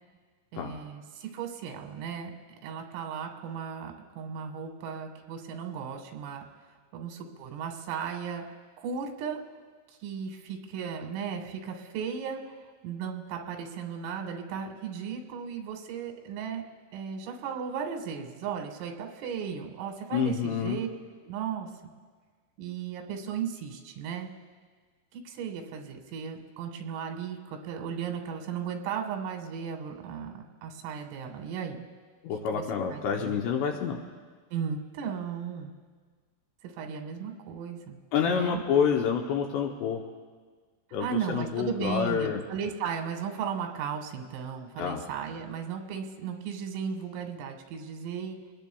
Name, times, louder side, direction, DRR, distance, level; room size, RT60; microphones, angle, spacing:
voice 1, 0.5-2.3 2.6-6.4 6.9-8.5 8.8-9.4 10.0-12.6 12.8-16.6 16.9-20.9 21.2-21.7 22.6-24.3 25.1-31.9 32.5-32.6 32.9-33.4 34.5-35.7 36.6-38.0 38.3-38.6 41.0-48.5, right 7 dB, 85° right, 4 dB, 4.0 m, -36 dB
voice 2, 20.1-20.8 32.2-34.0 38.1-40.0 40.9-42.4 44.8-45.0, left 7 dB, 75° left, 1 dB, 2.6 m, -28 dB
28.0 x 20.0 x 2.3 m, 1.5 s
omnidirectional pair, 5.7 m